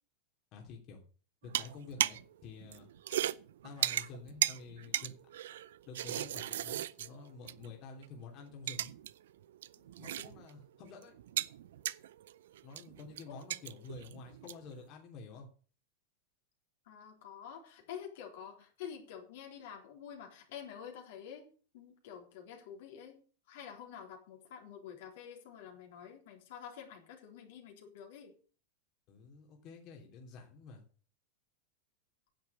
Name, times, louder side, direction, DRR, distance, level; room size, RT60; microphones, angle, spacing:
voice 1, 0.5-1.0 1.4-2.9 3.6-5.1 5.9-8.9 9.7-11.2 12.6-15.5 29.1-30.8, left 4 dB, 45° left, 1 dB, 3.0 m, -49 dB
sound 1, 1.4-2.3 2.6-7.7 8.0-8.1 8.5-9.1 9.4-10.6 10.9-14.7, right 12 dB, 75° right, 0.5 m, -37 dB
voice 2, 16.9-21.5 21.7-23.2 23.5-28.3, left 8 dB, 65° left, 2 dB, 3.6 m, -48 dB
10.5 x 7.6 x 7.0 m, 0.40 s
hypercardioid pair, 105°, 0 cm